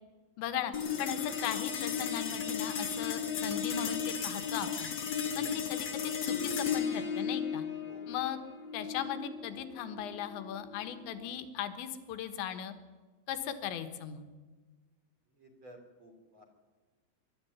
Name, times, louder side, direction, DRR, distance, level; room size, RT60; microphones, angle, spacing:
voice 1, 0.4-0.7 1.0-4.9 5.4-7.7 8.1-8.4 8.7-12.7 13.3-14.2, left 10 dB, 90° left, 9 dB, 3.7 m, -38 dB
sound 1, 0.7-11.3, left 7 dB, 60° left, 1.2 m, -35 dB
voice 2, 15.4-16.4, equal, 30° right, 4 dB, 4.2 m, -53 dB
24.5 x 12.5 x 9.8 m, 1.3 s
omnidirectional pair, 5.1 m